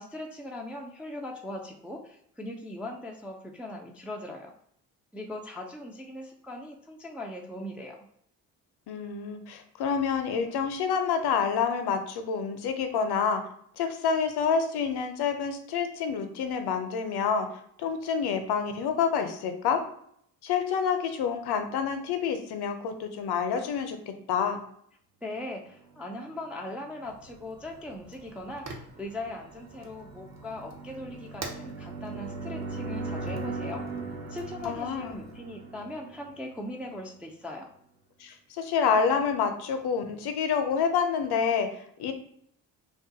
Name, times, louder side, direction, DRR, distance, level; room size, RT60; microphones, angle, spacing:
voice 1, 0.0-4.5 5.1-8.0 25.2-33.8 34.3-37.7, left 1 dB, 5° right, 1 dB, 0.3 m, -39 dB
voice 2, 8.9-13.4 13.8-17.5 17.8-19.8 20.4-24.6 34.6-35.2 38.2-42.1, left 6 dB, 55° left, 7 dB, 0.6 m, -28 dB
sound 1, 26.1-36.9, right 3 dB, 80° right, 0.7 m, -40 dB
Fire, 27.0-35.4, right 3 dB, 35° right, 0.7 m, -48 dB
2.4 x 2.3 x 2.7 m, 0.68 s
hypercardioid pair, 50°, 46 cm